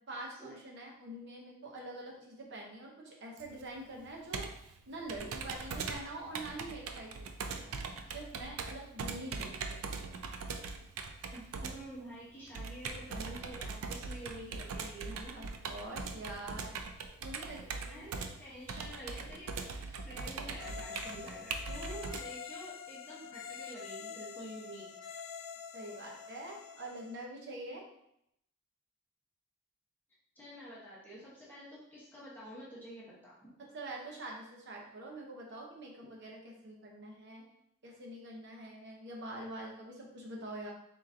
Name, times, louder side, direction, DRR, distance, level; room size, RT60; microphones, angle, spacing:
voice 1, 0.1-4.5 4.9-10.0 15.3-16.8 17.2-18.0 25.7-27.8 33.7-37.4 37.8-40.7, right 1 dB, 55° right, -1 dB, 0.9 m, -45 dB
Computer keyboard, 3.4-22.2, right 4 dB, 85° right, 0.4 m, -41 dB
voice 2, 11.3-15.6 17.9-24.9 30.4-33.5, equal, 10° left, -8 dB, 1.0 m, -48 dB
sound 1, 20.6-27.2, left 7 dB, 65° left, 0.3 m, -46 dB
3.8 x 3.7 x 2.7 m, 0.77 s
head